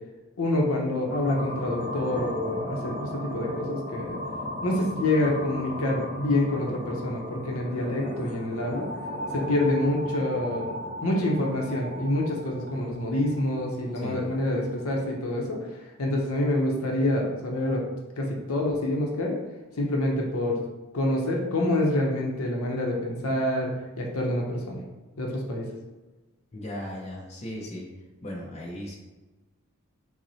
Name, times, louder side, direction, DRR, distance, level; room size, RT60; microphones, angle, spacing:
voice 1, 0.4-4.2 4.6-8.9 9.3-10.7 11.0-15.6 16.0-17.8 18.2-19.4 19.8-20.6 20.9-24.8 25.2-25.7, left 1 dB, 70° left, -1 dB, 0.7 m, -27 dB
sound 1, 1.1-15.1, left 1 dB, 20° right, 0.9 m, -37 dB
voice 2, 26.5-27.9 28.2-28.9, left 1 dB, 30° left, -3 dB, 0.6 m, -37 dB
5.7 x 2.0 x 2.7 m, 1.2 s
head